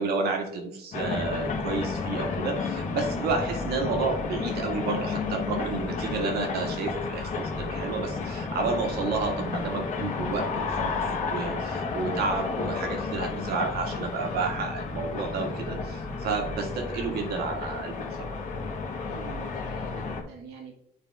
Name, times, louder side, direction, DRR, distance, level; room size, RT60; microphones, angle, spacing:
voice 1, 0.0-18.3, right 4 dB, 70° right, 4 dB, 1.6 m, -31 dB
sound 1, 0.9-20.2, left 4 dB, 45° left, 1.5 m, -32 dB
sound 2, 9.4-14.5, left 2 dB, 80° left, 2.1 m, -49 dB
voice 2, 19.0-20.7, right 5 dB, 90° right, 1 dB, 1.7 m, -45 dB
10.0 x 3.5 x 3.4 m, 0.74 s
cardioid pair, 110°, 17 cm